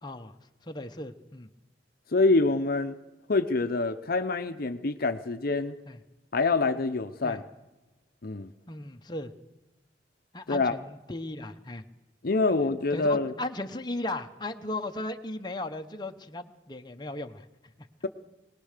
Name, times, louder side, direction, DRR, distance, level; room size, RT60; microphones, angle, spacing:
voice 1, 0.0-0.3 0.6-1.5 5.9-6.0 7.2-7.4 8.7-9.3 10.3-11.8 12.5-12.6 12.9-17.4, left 2 dB, 25° left, 5 dB, 0.9 m, -36 dB
voice 2, 2.1-3.0 3.3-5.8 6.3-7.4 8.2-8.5 10.5-10.7 12.2-13.3, left 3 dB, 55° left, 9 dB, 0.8 m, -26 dB
21.5 x 19.5 x 6.6 m, 1.1 s
head